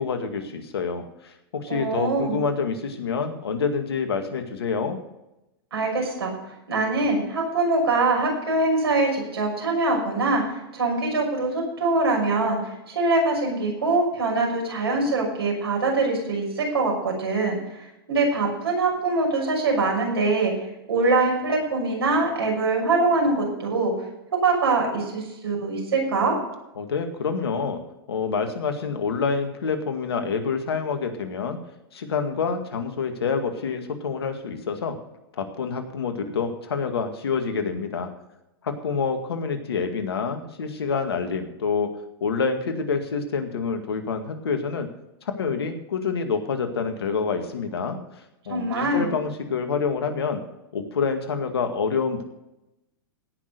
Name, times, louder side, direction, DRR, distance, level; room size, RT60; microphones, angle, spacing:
voice 1, 0.0-5.0 26.8-27.8 28.1-31.6 31.9-35.0 35.3-38.1 38.6-41.9 42.2-44.9 45.2-48.0 48.5-50.4 50.7-52.2, left 5 dB, 85° left, 6 dB, 2.1 m, -27 dB
voice 2, 1.7-2.4 5.7-6.3 6.7-20.5 20.9-23.9 24.3-26.4 48.5-49.1, right 3 dB, 85° right, 0 dB, 6.2 m, -23 dB
17.0 x 6.4 x 6.7 m, 0.91 s
hypercardioid pair, 110°, 13 cm